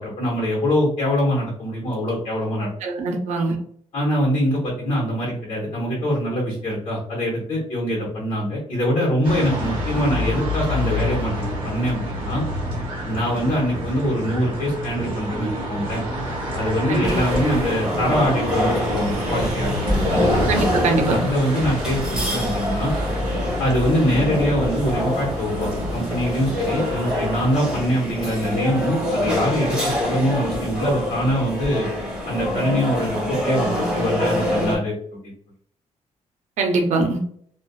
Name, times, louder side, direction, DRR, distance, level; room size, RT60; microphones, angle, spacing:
voice 1, 0.0-2.7 3.9-11.3 11.6-12.4 13.0-16.0 16.5-19.7 20.1-20.5 21.0-22.9 23.6-31.9 32.3-34.9, equal, 45° left, -5 dB, 1.1 m, -23 dB
voice 2, 2.8-3.6 16.9-17.1 20.5-21.2 36.6-37.2, right 3 dB, 70° right, 3 dB, 0.6 m, -22 dB
sound 1, 9.2-27.9, equal, 40° right, 0.9 m, -29 dB
sound 2, 17.0-34.8, left 1 dB, 5° right, 1.3 m, -25 dB
2.4 x 2.4 x 2.3 m, 0.62 s
cardioid pair, 125°, 12 cm